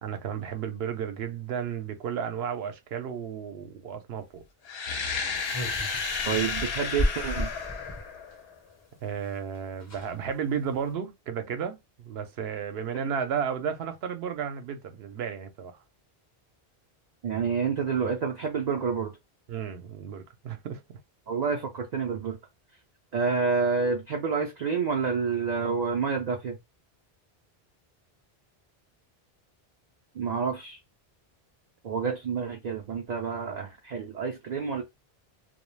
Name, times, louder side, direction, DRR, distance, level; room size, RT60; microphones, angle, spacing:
voice 1, 0.0-4.4 9.0-15.8 19.5-20.8, right 7 dB, 75° right, 0.8 m, -33 dB
sound 1, 4.6-8.6, left 5 dB, 75° left, 0.8 m, -32 dB
sound 2, 5.5-8.1 9.3-9.4 9.5-9.6 9.8-10.2 10.6-10.9, left 1 dB, 20° left, 0.6 m, -33 dB
voice 2, 6.3-7.5 12.9-13.1 17.2-19.1 21.3-22.4 23.1-26.6 30.1-30.8 31.8-34.8, right 5 dB, 55° right, 0.5 m, -28 dB
2.3 x 2.2 x 3.1 m
omnidirectional pair, 1.1 m